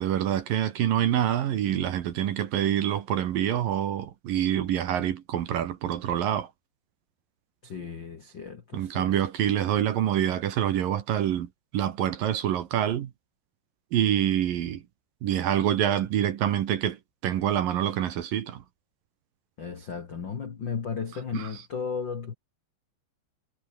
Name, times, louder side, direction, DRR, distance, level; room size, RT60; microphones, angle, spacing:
voice 1, 0.0-6.5 8.7-13.1 13.9-14.8 15.2-18.6 21.3-21.5, right 11 dB, 65° right, 2.8 m, -26 dB
voice 2, 7.6-9.2 19.6-22.3, left 6 dB, 55° left, 1.2 m, -35 dB
omnidirectional pair, 5.1 m